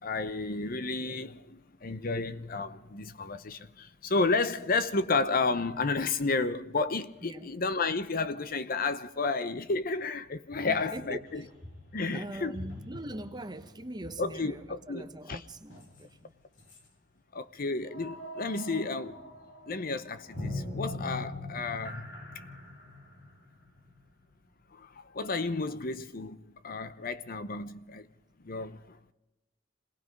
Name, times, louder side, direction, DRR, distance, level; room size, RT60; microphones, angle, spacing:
voice 1, 0.0-11.4 11.9-12.6 14.2-15.4 17.3-19.2 19.7-22.1 22.3-22.4 24.7-28.1 28.4-29.1, left 3 dB, 45° left, 0.8 m, -32 dB
sound 1, 7.2-7.3 10.5-16.3 16.6-16.9 17.8-24.5, left 2 dB, 65° left, 3.2 m, -43 dB
voice 2, 10.6-11.5 12.1-16.3, right 1 dB, 20° right, 1.1 m, -42 dB
27.5 x 19.0 x 5.3 m
head